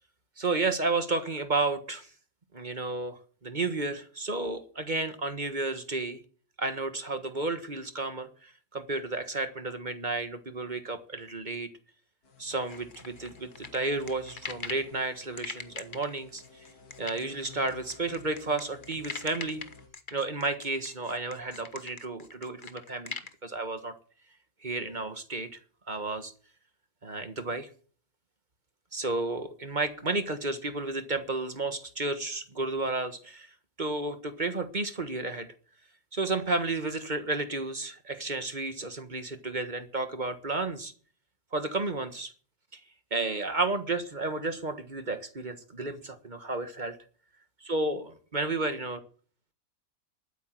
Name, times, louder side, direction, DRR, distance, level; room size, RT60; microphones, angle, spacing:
voice 1, 0.4-2.1 2.5-6.2 6.6-11.7 12.4-16.6 17.0-19.6 20.1-23.1 23.4-23.9 24.6-25.6 25.9-26.3 27.0-27.7 28.9-33.5 33.8-35.5 36.1-40.9 41.5-42.3 42.7-42.8 43.1-47.0 47.6-49.0, right 3 dB, 30° right, 9 dB, 1.4 m, -32 dB
sound 1, 12.2-19.9, left 4 dB, 60° left, 2.7 m, -54 dB
sound 2, 12.7-14.9 15.4-23.3, left 5 dB, 35° left, 1.2 m, -41 dB
12.0 x 9.4 x 7.7 m, 0.41 s
omnidirectional pair, 1.8 m